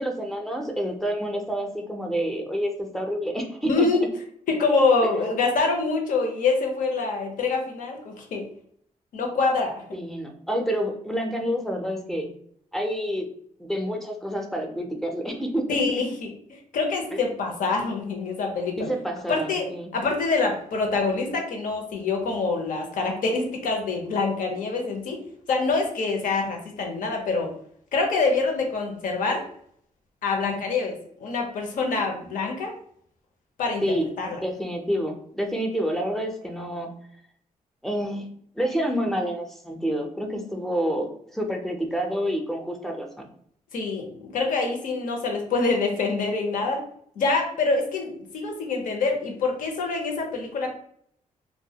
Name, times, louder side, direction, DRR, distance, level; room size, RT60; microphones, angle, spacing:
voice 1, 0.0-3.9 9.9-12.3 12.7-13.2 13.6-15.6 17.1-17.2 18.8-19.9 33.8-34.1 34.4-37.0 37.8-38.3 38.6-43.1, equal, ahead, 2 dB, 0.4 m, -28 dB
voice 2, 3.7-4.1 4.5-8.4 9.1-9.7 15.7-18.9 19.3-19.7 19.9-25.2 25.5-27.5 27.9-29.4 30.2-30.9 31.2-32.7 33.6-33.8 34.2-34.4 43.7-46.8 47.2-50.7, left 3 dB, 75° left, 2 dB, 0.7 m, -25 dB
2.5 x 2.2 x 2.7 m, 0.64 s
cardioid pair, 110°, 14 cm